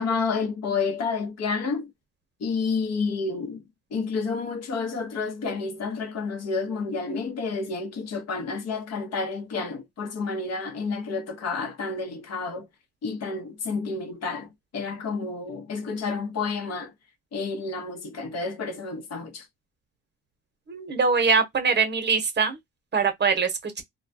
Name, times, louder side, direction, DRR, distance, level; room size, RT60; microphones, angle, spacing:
voice 1, 0.0-1.9 2.4-3.6 3.9-12.7 13.0-16.9 17.3-19.4, left 4 dB, 55° left, 0.8 m, -30 dB
voice 2, 20.7-22.6 22.9-23.8, right 5 dB, 35° right, 0.8 m, -23 dB
2.2 x 2.2 x 2.6 m
cardioid pair, 90°, 30 cm